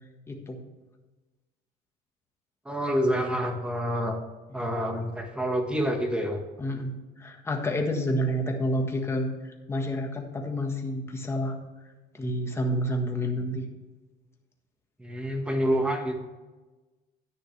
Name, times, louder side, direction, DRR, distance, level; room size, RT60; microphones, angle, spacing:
voice 1, 0.3-0.6 4.6-4.7 6.6-11.6 12.1-13.7, equal, 15° left, 2 dB, 1.5 m, -29 dB
voice 2, 2.6-4.2 4.5-6.4 15.0-16.2, equal, 5° right, 3 dB, 1.5 m, -27 dB
11.0 x 10.0 x 3.3 m, 1.2 s
cardioid pair, 150°, 18 cm